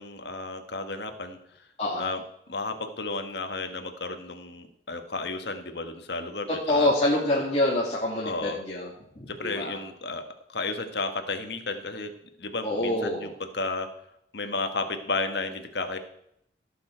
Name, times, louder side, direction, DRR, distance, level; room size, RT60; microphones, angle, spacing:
voice 1, 0.0-1.4 2.0-2.2 2.5-6.9 8.2-8.6 9.3-10.2 10.5-12.1 12.4-13.9 14.3-16.0, left 3 dB, 70° left, 7 dB, 1.4 m, -33 dB
voice 2, 6.5-8.9 9.2-9.8 12.6-13.3, left 1 dB, 35° left, -5 dB, 2.1 m, -26 dB
16.0 x 7.1 x 4.5 m, 0.73 s
head